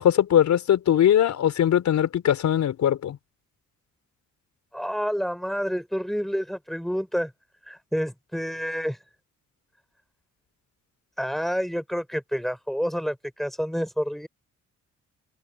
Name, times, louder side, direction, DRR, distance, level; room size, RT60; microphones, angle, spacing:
voice 1, 0.0-3.2, left 10 dB, 70° left, 4.5 m, -20 dB
voice 2, 4.7-7.3 7.7-9.0 11.2-14.3, equal, ahead, 5.1 m, -28 dB
cardioid pair, 90°, 30 cm